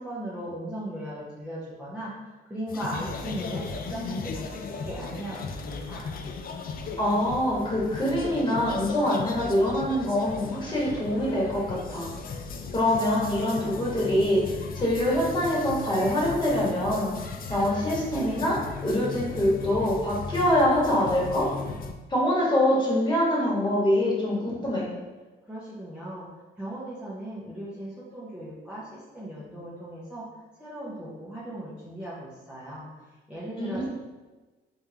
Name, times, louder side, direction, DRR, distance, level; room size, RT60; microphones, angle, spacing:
voice 1, 0.0-2.1 2.5-6.1 25.4-26.3 26.6-30.2 30.6-32.9 33.3-33.9, right 1 dB, 5° right, -9 dB, 0.9 m, -37 dB
sound 1, 2.7-21.9, left 4 dB, 50° left, 0.4 m, -37 dB
voice 2, 7.0-12.1 12.7-14.4 14.8-21.5 22.1-24.9 33.6-33.9, left 1 dB, 25° left, -6 dB, 1.5 m, -24 dB
3.5 x 3.4 x 2.9 m, 1.2 s
cardioid pair, 90°, 20 cm